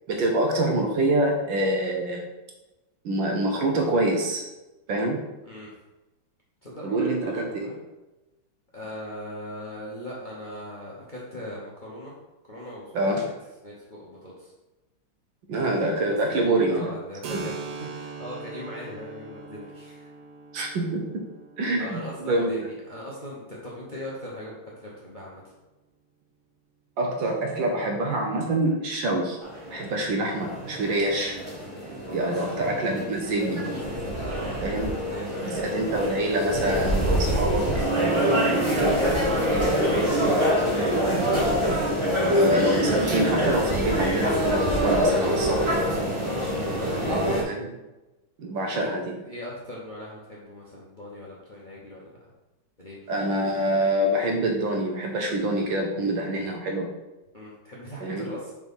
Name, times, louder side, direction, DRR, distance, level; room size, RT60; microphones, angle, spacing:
voice 1, 0.1-2.2 3.0-4.4 4.9-5.2 6.8-7.7 12.9-13.3 15.5-16.9 17.3-17.4 20.5-21.3 21.6-22.6 27.0-29.4 29.7-31.4 32.1-33.7 34.6-34.9 35.4-37.8 38.2-38.4 38.8-38.9 42.3-45.7 47.1-47.7 48.4-49.1 53.1-56.9 58.0-58.3, right 1 dB, 65° right, 2 dB, 1.5 m, -26 dB
voice 2, 6.6-7.8 8.7-12.1 12.4-13.3 13.6-14.5 16.3-20.1 21.8-25.5 32.2-32.8 34.1-34.6 35.0-35.7 37.7-38.0 38.3-38.7 40.1-41.8 45.4-46.5 46.8-47.3 48.6-48.9 49.2-52.1 52.8-53.1 57.3-58.5, left 1 dB, 30° left, -5 dB, 0.9 m, -40 dB
Keyboard (musical), 17.2-24.6, right 4 dB, 85° right, 1.7 m, -42 dB
sound 1, 29.4-47.4, equal, 25° right, 0.6 m, -25 dB
4.7 x 4.0 x 5.3 m, 1.0 s
omnidirectional pair, 2.4 m